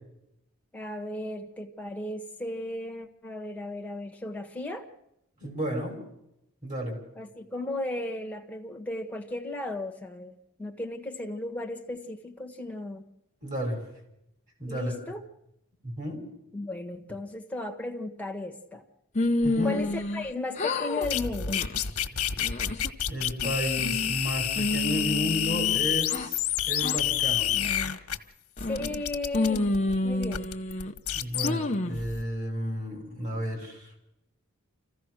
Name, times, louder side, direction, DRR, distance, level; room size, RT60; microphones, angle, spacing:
voice 1, 0.7-4.9 7.1-13.0 14.7-15.2 16.5-18.8 19.6-21.6 28.6-29.8 30.0-30.5, left 2 dB, 5° left, 3 dB, 1.5 m, -35 dB
voice 2, 5.4-6.0 6.6-7.0 13.4-13.8 14.6-14.9 15.8-16.2 19.4-19.8 22.1-22.2 23.1-27.5 31.1-33.9, equal, 35° right, 2 dB, 5.7 m, -32 dB
sound 1, 19.2-20.3 20.6-21.1 21.5-21.8 22.3-22.9 23.4-24.2 24.6-26.3 26.8-27.0 27.5-28.0 28.6-29.0 29.3-30.9 31.4-32.0, left 2 dB, 30° left, 0.9 m, -29 dB
sound 2, 21.0-28.2 28.6-31.5 32.0-32.2, left 10 dB, 90° left, 1.3 m, -29 dB
26.5 x 15.5 x 6.3 m, 0.83 s
head